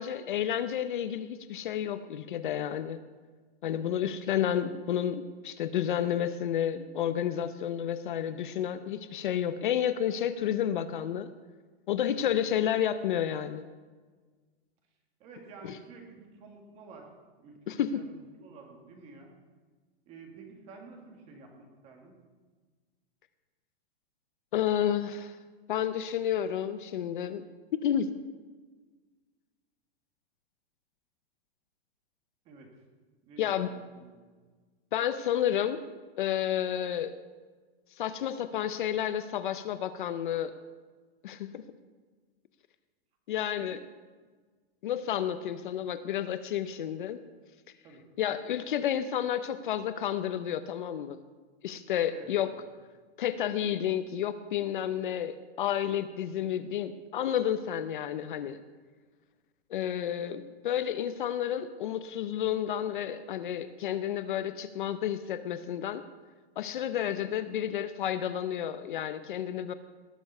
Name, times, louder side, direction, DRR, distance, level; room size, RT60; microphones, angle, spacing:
voice 1, 0.0-3.0 3.6-11.3 11.9-13.6 15.6-15.7 17.7-18.0 24.5-25.4 25.7-27.5 27.8-28.1 33.4-33.7 34.9-35.8 36.2-37.1 38.0-40.5 41.2-41.6 43.3-43.8 44.8-47.2 48.2-51.2 51.6-52.5 53.2-58.6 59.7-66.0 66.6-69.7, left 10 dB, 55° left, 12 dB, 0.6 m, -31 dB
voice 2, 15.2-17.1 17.4-19.3 20.0-22.2 32.4-32.7 33.2-34.3 43.5-43.8 47.8-48.0 52.1-52.6, right 4 dB, 20° right, 2 dB, 1.6 m, -51 dB
18.5 x 6.9 x 5.4 m, 1.4 s
supercardioid pair, 180°, 31 cm